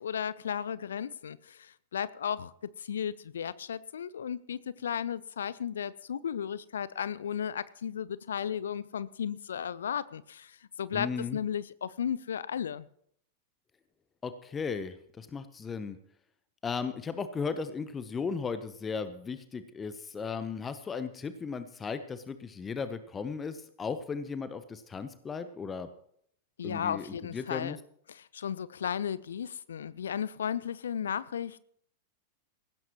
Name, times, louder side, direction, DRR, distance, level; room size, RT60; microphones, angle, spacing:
voice 1, 0.0-2.5 2.8-12.9 26.6-27.8 28.1-31.6, left 8 dB, 65° left, 0.5 m, -35 dB
voice 2, 10.9-11.4 14.2-16.0 16.6-25.9 26.6-27.8, left 5 dB, 20° left, 0.9 m, -36 dB
19.5 x 16.0 x 3.1 m
figure-of-eight pair, 90°, 0 cm